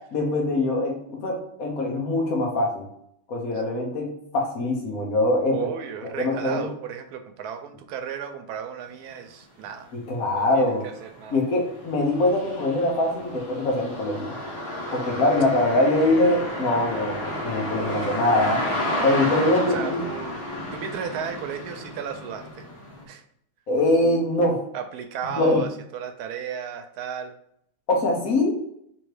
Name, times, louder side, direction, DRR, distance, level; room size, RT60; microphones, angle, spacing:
voice 1, 0.1-2.9 3.3-4.1 4.3-5.6 6.2-6.7 9.9-10.8 11.3-14.4 14.9-18.6 19.0-20.0 23.7-24.6 25.4-25.6 27.9-28.6, left 2 dB, 70° left, 0 dB, 1.4 m, -23 dB
voice 2, 5.5-9.9 10.3-11.4 19.7-20.3 20.7-22.7 23.0-23.2 24.7-27.3, right 7 dB, 85° right, 7 dB, 1.1 m, -34 dB
sound 1, 9.6-9.7 10.2-23.0, left 1 dB, 25° left, 1.3 m, -32 dB
3.5 x 3.1 x 4.7 m, 0.73 s
omnidirectional pair, 1.6 m